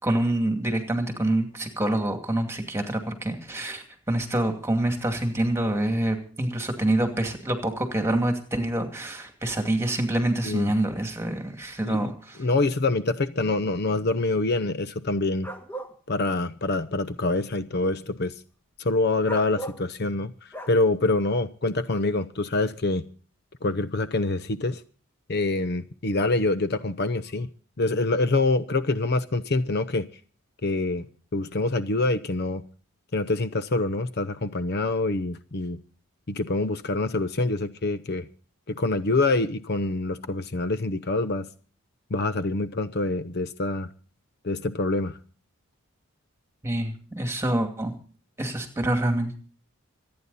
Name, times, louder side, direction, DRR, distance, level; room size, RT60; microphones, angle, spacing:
voice 1, 0.0-12.4 46.6-48.0 48.4-49.4, right 1 dB, 10° right, 2.4 m, -26 dB
voice 2, 12.4-15.5 16.1-18.3 18.8-23.0 23.6-24.8 25.3-27.5 27.8-30.1 30.6-31.0 31.3-32.6 33.1-35.8 36.3-38.3 38.7-41.5 42.1-43.9 44.4-45.2, left 2 dB, 45° left, 0.7 m, -25 dB
sound 1, 15.4-15.9 19.2-19.8 20.5-20.7, right 2 dB, 10° left, 1.5 m, -36 dB
26.0 x 9.6 x 4.1 m
head